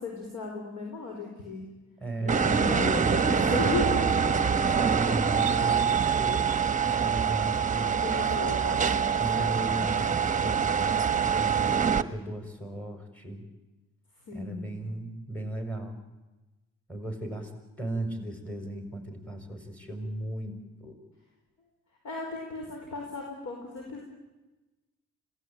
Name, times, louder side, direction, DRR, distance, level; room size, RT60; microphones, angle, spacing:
voice 1, 0.0-1.7 2.2-4.0 4.7-5.0 5.2-5.7 8.0-9.9 14.3-14.8 22.0-24.0, left 3 dB, 65° left, 1 dB, 5.0 m, -36 dB
voice 2, 2.0-3.9 4.6-8.0 9.1-13.4 14.3-16.0 16.9-17.5 17.8-20.6 20.8-21.0, right 1 dB, 5° left, 5 dB, 5.5 m, -36 dB
sound 1, 2.3-12.0, right 6 dB, 25° right, 1.2 m, -25 dB
26.0 x 17.5 x 9.0 m, 1.1 s
cardioid pair, 90°, 30 cm